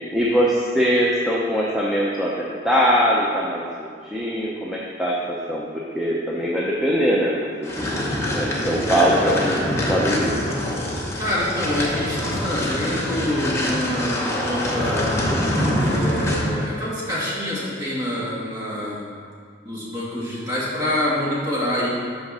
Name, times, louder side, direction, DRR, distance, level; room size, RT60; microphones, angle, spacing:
voice 1, 0.1-5.6 5.9-8.0 8.2-10.3, equal, ahead, -5 dB, 0.6 m, -22 dB
sound 1, 7.6-16.6, left 1 dB, 15° left, 1.0 m, -24 dB
voice 2, 11.2-15.1 15.8-19.1 19.6-21.9, left 1 dB, 20° right, -8 dB, 2.0 m, -26 dB
6.2 x 5.3 x 6.1 m, 2.1 s
head